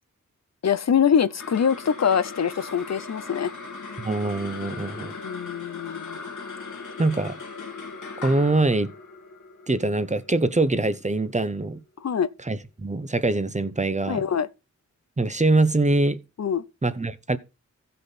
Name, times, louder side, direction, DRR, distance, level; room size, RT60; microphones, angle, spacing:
voice 1, 0.6-3.5 5.2-6.2 12.0-12.3 14.1-14.5 16.4-16.6, left 7 dB, 60° left, 0.6 m, -24 dB
sound 1, 1.1-11.7, left 4 dB, 80° left, 2.4 m, -39 dB
voice 2, 4.0-5.1 7.0-7.4 8.2-8.9 9.7-11.8 12.5-14.2 15.2-16.2 16.8-17.4, right 2 dB, 25° right, 0.8 m, -23 dB
15.5 x 5.7 x 4.1 m
wide cardioid pair, 75°, 30 cm